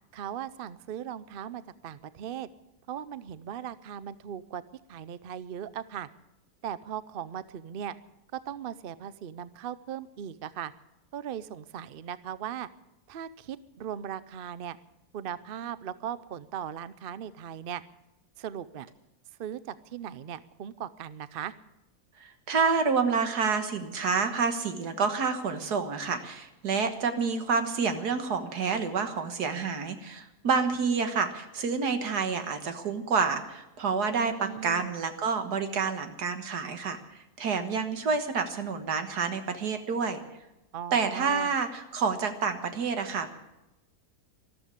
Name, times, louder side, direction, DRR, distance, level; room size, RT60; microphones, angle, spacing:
voice 1, 0.1-2.5 2.9-4.6 4.9-6.1 6.6-8.0 8.3-10.7 11.1-12.7 13.1-14.8 15.1-17.8 18.4-18.9 19.4-21.5 34.1-34.9 40.7-41.5, right 9 dB, 60° right, 16 dB, 0.5 m, -38 dB
voice 2, 22.2-40.2 40.9-43.4, right 5 dB, 80° right, 8 dB, 2.0 m, -28 dB
14.0 x 12.5 x 8.2 m, 0.96 s
omnidirectional pair, 1.7 m